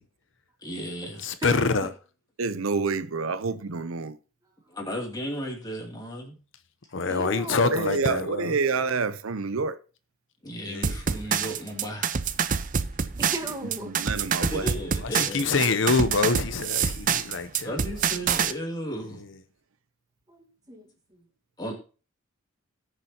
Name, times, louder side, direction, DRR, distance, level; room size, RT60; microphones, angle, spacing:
voice 1, 0.6-1.3 4.7-6.4 10.4-12.3 14.4-15.8 17.6-19.2 21.6-21.7, equal, 20° left, 2.6 m, -35 dB
voice 2, 1.2-1.9 6.9-8.6 10.7-11.0 15.0-18.1 19.1-19.3, left 4 dB, 65° left, 0.8 m, -26 dB
voice 3, 2.4-4.2 7.6-9.8 13.8-14.7, right 4 dB, 90° right, 0.6 m, -28 dB
voice 4, 7.1-7.8 13.1-13.9 20.3-20.8, right 1 dB, 20° right, 1.5 m, -36 dB
sound 1, 10.8-18.5, right 7 dB, 40° right, 0.5 m, -26 dB
18.0 x 6.7 x 2.8 m
head